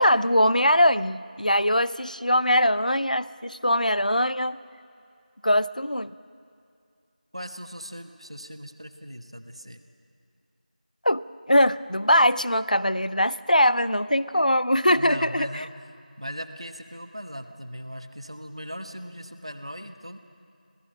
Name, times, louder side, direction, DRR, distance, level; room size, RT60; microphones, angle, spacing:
voice 1, 0.0-4.6 5.4-6.1 11.0-15.5, equal, 65° left, 16 dB, 0.5 m, -22 dB
voice 2, 7.3-9.8 14.9-15.7 16.2-20.2, equal, 40° right, 8 dB, 1.1 m, -38 dB
26.5 x 17.5 x 6.2 m, 2.4 s
figure-of-eight pair, 180°, 5 cm